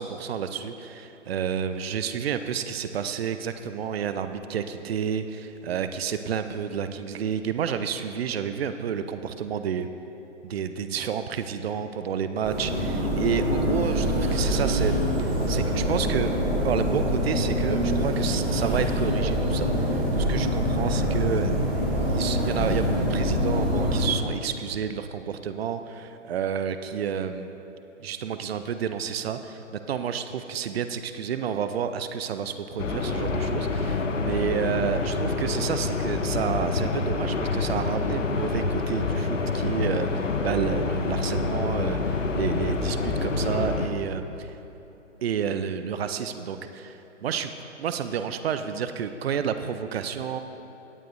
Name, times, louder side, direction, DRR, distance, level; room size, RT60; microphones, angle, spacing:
voice 1, 0.0-9.9 10.4-15.0 15.5-16.3 16.6-21.6 22.1-27.6 28.0-29.6 29.9-44.6 45.2-47.5 47.8-50.4, right 7 dB, 55° right, 10 dB, 0.6 m, -30 dB
sound 1, 12.4-24.0, equal, 25° right, 2.6 m, -25 dB
sound 2, 32.8-43.9, left 3 dB, 75° left, 1.0 m, -27 dB
17.5 x 9.2 x 2.6 m, 3.0 s
figure-of-eight pair, 130°, 38 cm